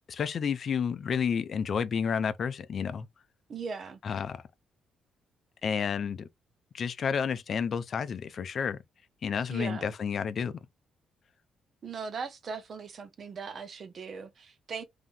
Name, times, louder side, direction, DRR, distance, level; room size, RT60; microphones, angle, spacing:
voice 1, 0.1-3.1 4.0-4.4 5.6-6.3 6.7-8.8 9.2-10.5, left 6 dB, 50° left, 0.6 m, -30 dB
voice 2, 3.5-4.0 9.5-9.9 11.8-14.8, right 5 dB, 50° right, 0.9 m, -39 dB
3.6 x 2.8 x 3.7 m
cardioid pair, 90°, 0 cm